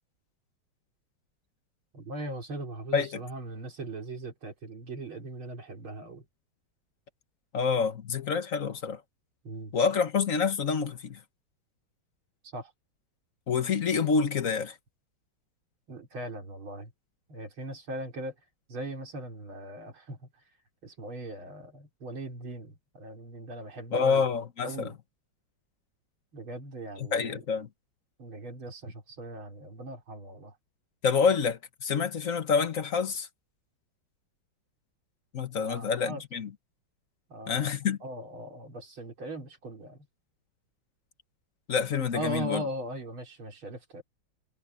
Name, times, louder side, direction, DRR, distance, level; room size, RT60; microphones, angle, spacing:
voice 1, 1.9-6.2 9.4-9.7 12.5-12.7 15.9-16.9 17.3-18.3 18.7-20.2 20.8-24.2 24.6-24.9 26.3-27.4 28.2-30.5 35.6-36.2 37.3-37.7 38.0-40.0 42.1-44.0, right 1 dB, 85° right, 4.5 m, -39 dB
voice 2, 7.5-9.0 9.7-11.2 13.5-14.7 23.9-24.9 27.0-27.7 31.0-33.3 35.3-36.5 37.5-38.0 41.7-42.6, left 5 dB, 45° left, 1.4 m, -27 dB
omnidirectional pair, 2.2 m